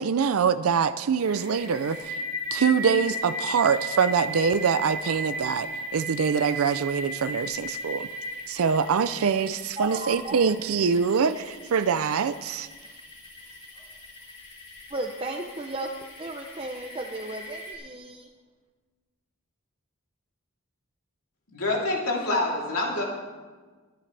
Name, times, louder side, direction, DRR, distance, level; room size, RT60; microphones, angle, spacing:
voice 1, 0.0-2.2 2.5-8.1 8.5-12.7, right 6 dB, 85° right, 12 dB, 0.5 m, -24 dB
sound 1, 1.2-17.7, equal, 25° left, 3.0 m, -37 dB
voice 2, 9.8-10.5 14.9-15.9 16.2-18.3, right 2 dB, 25° right, 3 dB, 0.6 m, -34 dB
voice 3, 21.5-23.0, left 2 dB, 80° left, -3 dB, 3.2 m, -26 dB
23.0 x 10.5 x 3.3 m, 1.4 s
head